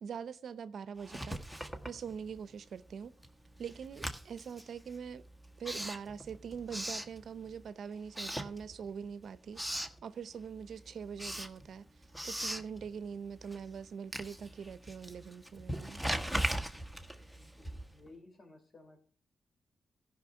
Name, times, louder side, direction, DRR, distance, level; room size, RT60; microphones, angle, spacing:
voice 1, 0.0-1.6 1.8-3.2 3.6-5.2 5.6-11.9 12.2-16.0, right 6 dB, 75° right, 0.6 m, -43 dB
Writing, 1.0-2.6 2.9-7.7 8.1-9.1 9.3-10.0 10.4-18.1, right 1 dB, 5° left, 1.3 m, -40 dB
voice 2, 17.3-19.0, left 2 dB, 55° left, 3.7 m, -57 dB
14.5 x 5.8 x 5.7 m
cardioid pair, 80°, 0 cm